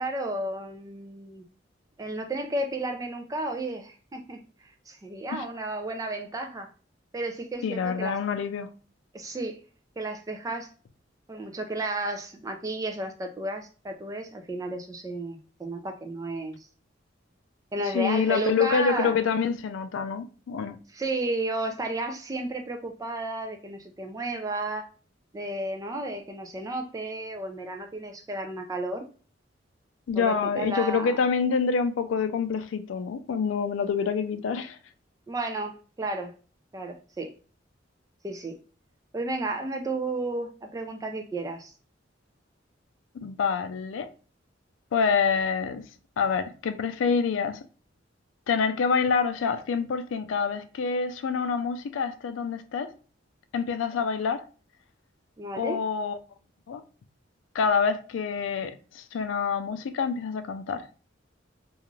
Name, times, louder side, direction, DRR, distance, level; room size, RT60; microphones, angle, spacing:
voice 1, 0.0-1.4 2.0-4.4 4.9-6.7 7.1-8.2 9.1-9.6 10.0-10.7 11.3-16.7 17.7-19.3 20.9-24.9 25.3-29.0 30.2-31.2 35.3-36.3 36.7-37.3 38.2-38.5 39.1-41.7 55.4-55.8, right 2 dB, 20° right, 0.3 m, -32 dB
voice 2, 7.6-8.7 17.9-20.8 30.1-34.8 43.1-44.1 44.9-45.8 46.2-47.6 48.5-52.9 53.5-54.5 55.6-56.2 56.7-56.8 57.5-60.9, left 5 dB, 85° left, 0.3 m, -27 dB
2.4 x 2.3 x 3.0 m
head